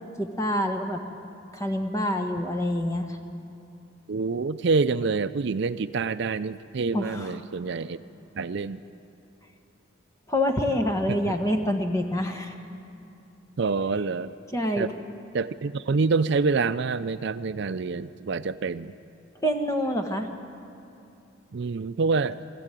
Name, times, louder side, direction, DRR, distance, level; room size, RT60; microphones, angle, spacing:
voice 1, 0.2-1.0 1.5-3.2 6.9-7.4 10.3-12.5 14.5-14.9 19.4-20.3, equal, 15° left, 5 dB, 1.3 m, -26 dB
voice 2, 4.1-8.0 8.4-8.8 11.1-11.2 13.6-14.3 14.8-14.9 15.3-19.0 21.5-22.4, right 4 dB, 60° right, 12 dB, 0.5 m, -26 dB
21.5 x 14.0 x 9.1 m, 2.8 s
head